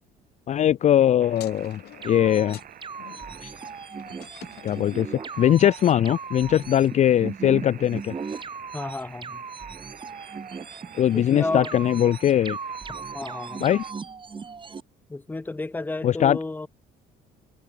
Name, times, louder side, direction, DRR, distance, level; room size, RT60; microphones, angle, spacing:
voice 1, 0.5-2.6 3.4-3.5 4.6-5.1 5.4-8.1 11.0-12.6 13.6-13.8 16.0-16.4, left 11 dB, 45° left, 0.5 m, -21 dB
sound 1, 1.2-13.9, right 10 dB, 55° right, 5.4 m, -48 dB
sound 2, 1.3-5.2, left 14 dB, 75° left, 6.5 m, -47 dB
sound 3, 2.0-14.8, right 5 dB, 30° right, 4.5 m, -37 dB
voice 2, 8.7-9.4 11.1-11.7 13.1-13.6 15.1-16.7, left 2 dB, 10° left, 0.9 m, -32 dB
cardioid pair, 110°, 17 cm